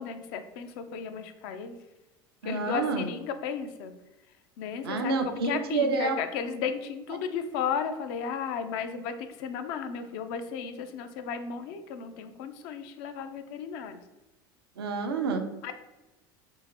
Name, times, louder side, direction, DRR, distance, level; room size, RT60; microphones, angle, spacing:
voice 1, 0.0-1.8 2.4-3.9 4.6-5.1 5.4-14.0 15.6-15.7, left 6 dB, 65° left, 9 dB, 0.5 m, -34 dB
voice 2, 2.4-3.1 4.8-6.2 14.8-15.5, right 4 dB, 90° right, 5 dB, 0.5 m, -28 dB
3.7 x 2.5 x 2.9 m, 1.0 s
hypercardioid pair, 85°, 12 cm